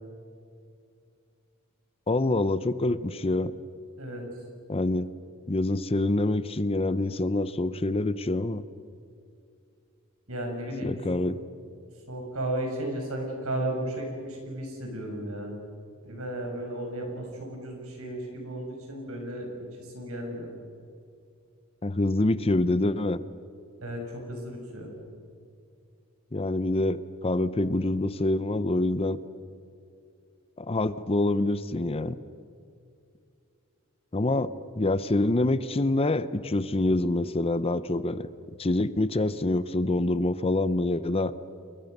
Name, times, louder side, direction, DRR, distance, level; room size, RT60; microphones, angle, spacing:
voice 1, 2.1-3.5 4.7-5.1 5.5-8.6 10.8-11.4 21.8-23.2 26.3-29.2 30.6-32.2 34.1-38.3 38.6-41.3, left 2 dB, 25° left, 15 dB, 0.7 m, -26 dB
voice 2, 10.3-11.2 12.1-15.5 16.0-19.5 19.8-20.5 23.8-24.9 34.3-34.4, right 1 dB, 80° right, 2 dB, 6.4 m, -34 dB
29.5 x 22.0 x 6.7 m, 2.4 s
head